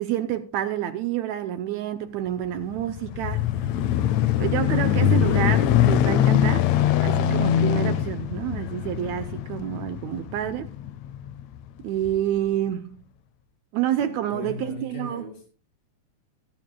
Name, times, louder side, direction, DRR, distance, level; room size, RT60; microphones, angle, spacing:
voice 1, 0.0-3.5 4.4-6.7 7.0-10.7 11.8-13.0 13.7-15.2, right 11 dB, 75° right, 1.7 m, -28 dB
sound 1, 2.6-11.4 12.1-12.2, left 10 dB, 75° left, 1.7 m, -22 dB
voice 2, 14.0-15.4, left 2 dB, 20° left, 1.9 m, -37 dB
22.5 x 9.2 x 2.3 m
omnidirectional pair, 3.8 m